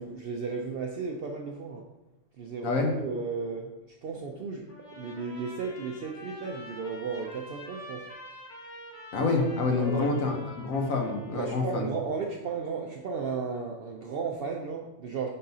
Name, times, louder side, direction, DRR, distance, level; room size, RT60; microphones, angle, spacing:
voice 1, 0.0-1.8 2.4-3.7 4.0-8.1 9.7-10.1 11.3-15.3, right 5 dB, 65° right, 1 dB, 0.6 m, -34 dB
voice 2, 2.6-3.0 9.1-11.9, left 3 dB, 75° left, 3 dB, 1.3 m, -27 dB
Trumpet, 4.7-11.8, equal, 60° left, 1.7 m, -46 dB
9.4 x 3.8 x 2.7 m, 0.98 s
omnidirectional pair, 1.5 m